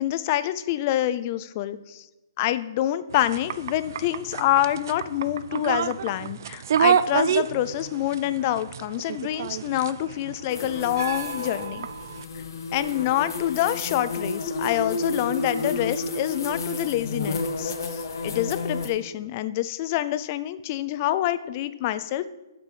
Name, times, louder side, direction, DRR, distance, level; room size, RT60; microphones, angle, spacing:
voice 1, 0.0-2.1 2.4-11.9 12.7-22.3, left 13 dB, 30° left, 14 dB, 0.5 m, -26 dB
sound 1, 3.1-12.2, right 8 dB, 55° right, 0.4 m, -29 dB
sound 2, 10.5-18.9, left 3 dB, 65° left, 1.2 m, -31 dB
7.4 x 6.0 x 7.4 m, 1.1 s
hypercardioid pair, 155°, 2 cm